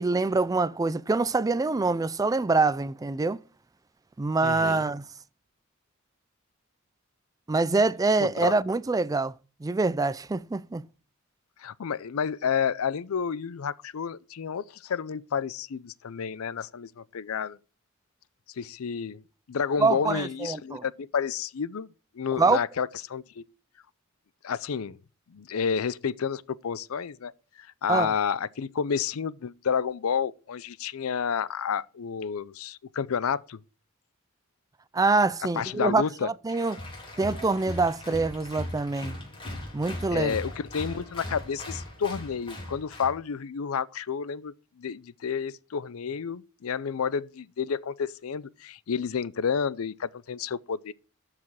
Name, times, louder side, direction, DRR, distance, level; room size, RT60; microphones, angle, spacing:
voice 1, 0.0-3.4 4.2-5.0 7.5-9.3 9.6-10.8 19.8-20.8 22.4-22.6 27.9-28.1 34.9-36.8 37.2-39.2 39.7-40.3, right 3 dB, 15° right, 0.3 m, -25 dB
voice 2, 4.4-4.9 8.2-8.5 11.6-17.6 18.6-19.2 19.5-21.9 22.1-23.4 24.4-25.0 25.3-27.3 27.6-33.6 35.5-36.3 40.1-50.9, left 6 dB, 75° left, 0.5 m, -30 dB
Applause, 36.5-43.1, left 1 dB, 25° left, 3.6 m, -39 dB
13.0 x 4.9 x 4.7 m
head